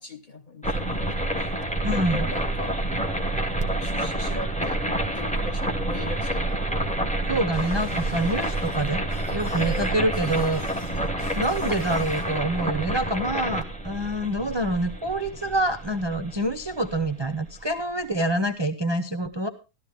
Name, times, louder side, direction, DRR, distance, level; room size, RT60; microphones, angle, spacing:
voice 1, 0.0-1.6 1.9-2.8 3.1-7.3 9.5-10.0, left 2 dB, 35° left, 0.9 m, -40 dB
sound 1, 0.6-17.5, right 1 dB, 5° left, 0.9 m, -28 dB
voice 2, 1.8-2.3 7.3-10.7 11.3-19.5, right 1 dB, 40° right, 0.3 m, -26 dB
sound 2, 3.9-16.6, left 3 dB, 55° left, 3.3 m, -54 dB
Shatter, 7.5-12.3, left 1 dB, 80° left, 4.5 m, -46 dB
13.5 x 12.5 x 3.5 m
omnidirectional pair, 1.7 m